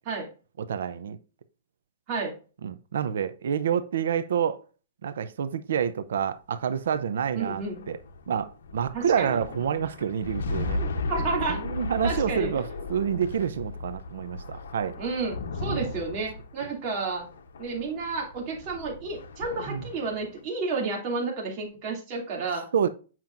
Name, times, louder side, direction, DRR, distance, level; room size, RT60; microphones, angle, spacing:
voice 1, 0.6-1.2 2.6-4.6 5.0-8.0 8.3-10.8 11.5-15.0 15.7-15.9 19.7-19.8 22.7-22.9, right 8 dB, 80° right, 0.6 m, -28 dB
sound 1, 6.8-20.4, left 3 dB, 85° left, 0.8 m, -36 dB
voice 2, 7.3-7.9 8.9-9.4 10.8-11.6 12.0-12.5 15.0-17.2 17.6-22.7, right 4 dB, 30° right, 2.6 m, -31 dB
7.4 x 5.8 x 2.6 m
hypercardioid pair, 160°, 0 cm